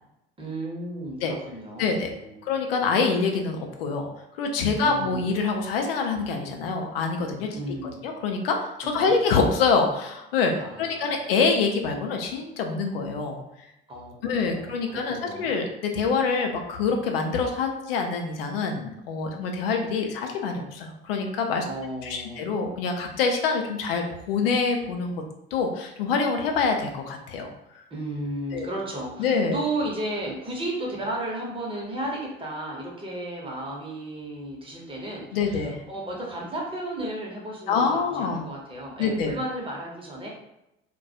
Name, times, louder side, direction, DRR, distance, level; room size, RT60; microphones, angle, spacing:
voice 1, 0.4-2.5 4.8-5.3 7.5-8.1 8.8-9.1 10.6-11.2 13.9-15.5 21.7-22.4 27.9-40.3, right 1 dB, 15° right, -2 dB, 0.8 m, -34 dB
voice 2, 1.8-2.1 2.4-4.1 4.4-7.5 8.0-13.4 14.2-21.6 22.0-25.2 25.5-27.5 28.5-28.7 29.2-29.6 35.3-35.8 37.7-38.4 39.0-39.3, left 4 dB, 65° left, 3 dB, 0.5 m, -25 dB
2.2 x 2.2 x 2.7 m, 0.85 s
figure-of-eight pair, 65°, 31 cm